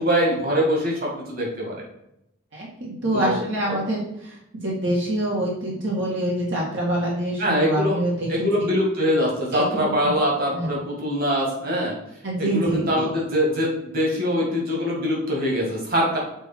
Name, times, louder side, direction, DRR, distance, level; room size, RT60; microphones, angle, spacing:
voice 1, 0.0-1.8 3.1-3.4 7.4-8.0 8.3-11.9 12.4-16.2, equal, 45° right, -2 dB, 2.3 m, -23 dB
voice 2, 2.5-4.4 4.6-8.3 9.5-9.9 10.5-10.7 12.2-13.1, right 1 dB, 75° right, -4 dB, 1.8 m, -25 dB
6.9 x 4.3 x 4.6 m, 0.81 s
head